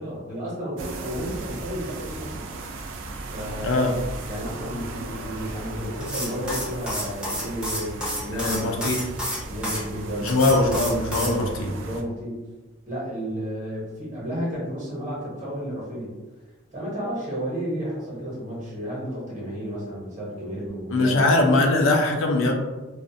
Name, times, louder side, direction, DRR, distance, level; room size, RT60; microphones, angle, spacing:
voice 1, 0.0-2.5 3.3-3.9 4.2-8.8 9.5-10.5 11.0-12.4 12.9-16.1 16.7-21.2, equal, 40° right, -7 dB, 1.0 m, -32 dB
sound 1, 0.8-12.0, right 2 dB, 70° right, 0.3 m, -36 dB
voice 2, 3.6-3.9 8.3-9.0 10.2-11.7 20.9-22.5, left 2 dB, 75° left, 2 dB, 0.4 m, -21 dB
sound 2, 6.0-9.8 10.3-11.3, equal, 5° right, 0.5 m, -30 dB
2.4 x 2.1 x 2.6 m, 1.2 s
head